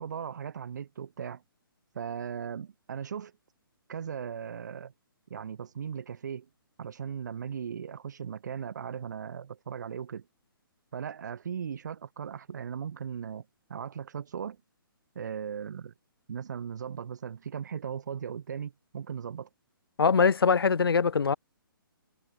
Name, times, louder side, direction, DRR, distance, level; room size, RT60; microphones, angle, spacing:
voice 1, 0.0-1.4 1.9-3.3 3.9-4.9 5.3-6.5 6.8-10.2 10.9-13.4 13.7-14.6 15.1-15.9 16.3-19.5, right 7 dB, 50° right, 6.1 m, -37 dB
voice 2, 20.0-21.3, left 5 dB, 85° left, 2.1 m, -22 dB
hypercardioid pair, 170°, 12 cm